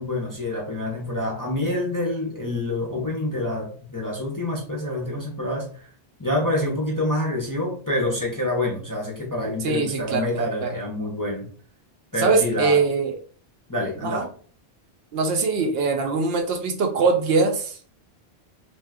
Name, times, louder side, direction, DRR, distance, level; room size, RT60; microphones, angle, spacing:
voice 1, 0.0-5.8 6.2-11.5 12.1-12.8 13.7-14.3, left 1 dB, 25° left, -2 dB, 0.5 m, -27 dB
voice 2, 9.6-10.8 12.2-13.1 14.0-14.3 15.1-17.8, right 4 dB, 70° right, 5 dB, 0.8 m, -22 dB
2.6 x 2.3 x 3.4 m, 0.43 s
omnidirectional pair, 1.1 m